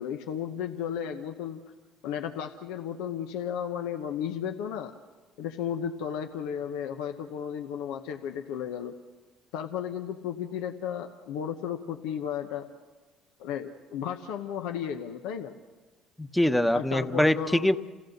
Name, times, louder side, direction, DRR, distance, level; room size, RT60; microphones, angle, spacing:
voice 1, 0.0-1.6 2.0-4.9 5.4-9.0 9.5-12.7 13.4-15.5 16.7-17.7, left 8 dB, 85° left, 5 dB, 1.0 m, -34 dB
voice 2, 16.2-17.7, left 1 dB, 5° left, 10 dB, 1.0 m, -23 dB
28.5 x 16.0 x 6.6 m, 1.3 s
supercardioid pair, 80°, 0 cm